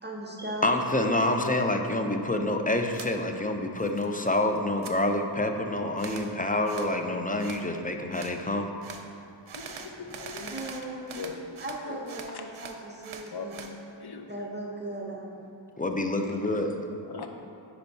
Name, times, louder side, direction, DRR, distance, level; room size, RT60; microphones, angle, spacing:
voice 1, 0.0-0.8 9.9-10.2 10.5-11.2 11.6-13.8 14.3-15.5, right 1 dB, 20° right, -2 dB, 0.7 m, -38 dB
voice 2, 0.6-8.7 15.8-16.7, left 1 dB, 20° left, 4 dB, 0.5 m, -27 dB
sound 1, 2.9-3.1 3.5-4.3 4.6-5.0 6.0-6.3 6.7-6.9 7.4-7.6 8.1-8.4 8.8-9.0 9.5-11.8 12.1-13.7, right 5 dB, 80° right, 0.6 m, -43 dB
voice 3, 9.6-10.6 11.1-11.4 11.9-12.0 12.3-12.4 13.3-13.5 14.0-14.3 16.5-16.8 17.1-17.3, left 5 dB, 50° left, 4 dB, 0.7 m, -39 dB
9.9 x 4.4 x 2.7 m, 2.6 s
wide cardioid pair, 45°, 48 cm